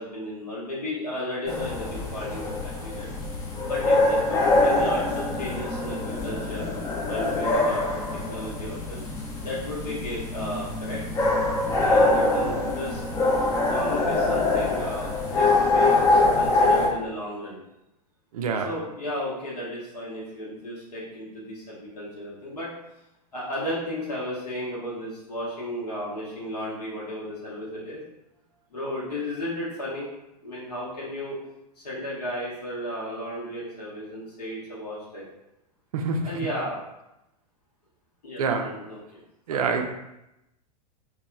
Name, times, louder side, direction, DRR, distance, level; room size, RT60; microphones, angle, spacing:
voice 1, 0.0-3.1 3.6-6.7 7.1-7.8 8.3-9.0 9.4-11.0 11.8-13.0 13.7-16.0 16.3-17.6 18.6-22.7 23.3-28.0 28.7-30.1 30.4-31.4 31.8-35.2 36.2-36.8 38.2-39.2 39.5-39.6, left 1 dB, 70° left, -6 dB, 0.9 m, -34 dB
sound 1, 1.5-16.9, left 2 dB, 15° left, 0.4 m, -24 dB
voice 2, 18.3-18.7 35.9-36.3 38.4-38.7 39.5-39.8, right 5 dB, 60° right, 4 dB, 0.4 m, -26 dB
2.8 x 2.1 x 2.3 m, 0.90 s
figure-of-eight pair, 95°, 21 cm